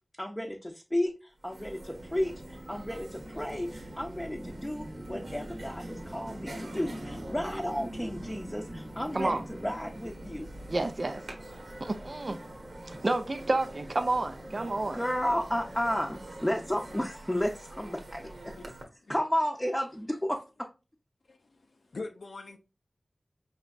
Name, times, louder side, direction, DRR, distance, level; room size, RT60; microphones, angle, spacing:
voice 1, 0.2-10.5 14.9-18.6 19.1-20.7, equal, 10° left, 0.7 m, -33 dB
sound 1, 1.1-1.2 1.4-18.8, right 1 dB, 75° right, 1.1 m, -46 dB
sound 2, 1.9-17.0, right 1 dB, 30° right, 0.9 m, -45 dB
voice 2, 10.7-11.2 11.8-12.4 12.8-15.0, right 2 dB, 50° right, 0.5 m, -30 dB
voice 3, 21.3-22.6, left 3 dB, 85° left, 0.5 m, -43 dB
5.0 x 3.3 x 2.4 m
wide cardioid pair, 65°, 0 cm